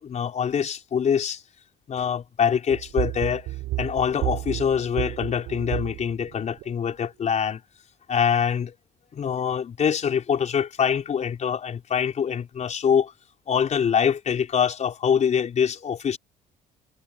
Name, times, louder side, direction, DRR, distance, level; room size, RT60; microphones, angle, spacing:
voice 1, 0.0-1.4 1.9-3.5 3.8-7.6 8.1-8.7 9.1-13.1 13.5-16.2, left 7 dB, 45° left, 4.7 m, -24 dB
sound 1, 2.7-6.8, right 17 dB, 85° right, 7.3 m, -31 dB
cardioid pair, 110°, 17 cm